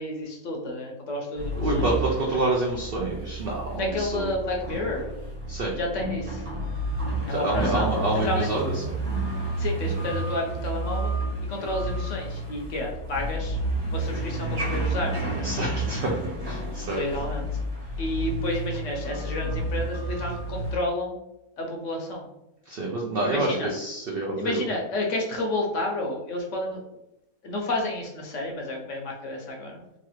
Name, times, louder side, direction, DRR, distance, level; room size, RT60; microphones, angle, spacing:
voice 1, 0.0-1.8 3.7-5.1 5.8-6.4 7.3-8.5 9.6-13.6 13.9-15.5 16.9-17.5 18.0-21.2 21.6-22.3 23.2-23.7 24.4-26.8 27.4-29.8, left 1 dB, 65° left, 1 dB, 0.8 m, -31 dB
sound 1, 1.4-20.7, right 1 dB, 45° right, 1.3 m, -30 dB
voice 2, 1.6-4.3 5.5-5.8 7.3-8.7 15.4-16.1 16.4-17.0 22.7-24.6, right 2 dB, 80° right, -1 dB, 0.5 m, -27 dB
3.1 x 2.4 x 3.0 m, 0.90 s
omnidirectional pair, 1.6 m